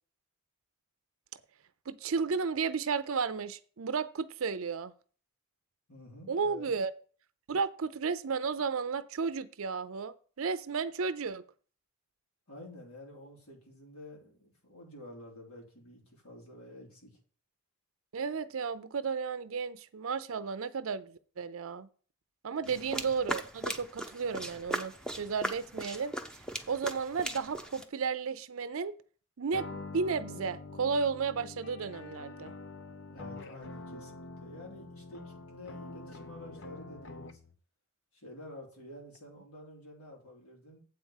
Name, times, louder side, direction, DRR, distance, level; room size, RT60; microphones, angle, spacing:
voice 1, 1.9-4.9 6.3-6.9 7.5-11.4 18.1-21.9 22.4-26.1 26.7-29.0 29.4-32.5, right 5 dB, 65° right, 14 dB, 0.5 m, -33 dB
voice 2, 5.9-6.7 12.5-17.1 22.6-22.9 33.1-37.4 38.1-40.8, left 1 dB, 85° left, -1 dB, 3.8 m, -50 dB
sound 1, 22.7-27.8, right 1 dB, 5° left, 0.7 m, -38 dB
sound 2, 29.5-37.6, left 2 dB, 55° left, 0.8 m, -45 dB
7.9 x 4.8 x 7.2 m, 0.41 s
head